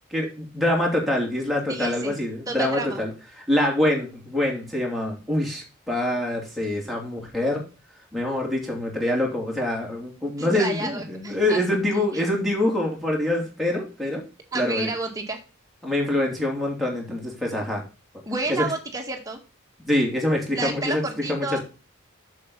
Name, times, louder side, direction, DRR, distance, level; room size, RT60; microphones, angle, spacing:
voice 1, 0.1-7.6 8.1-14.2 14.5-14.9 15.8-17.8 18.5-18.6 19.9-21.0 21.3-21.6, left 1 dB, ahead, -1 dB, 2.9 m, -25 dB
voice 2, 1.7-2.1 2.5-3.0 10.4-11.6 12.1-12.2 14.5-15.4 18.3-19.4 20.5-21.6, right 2 dB, 15° right, 2 dB, 1.9 m, -30 dB
8.2 x 7.2 x 4.1 m, 0.33 s
head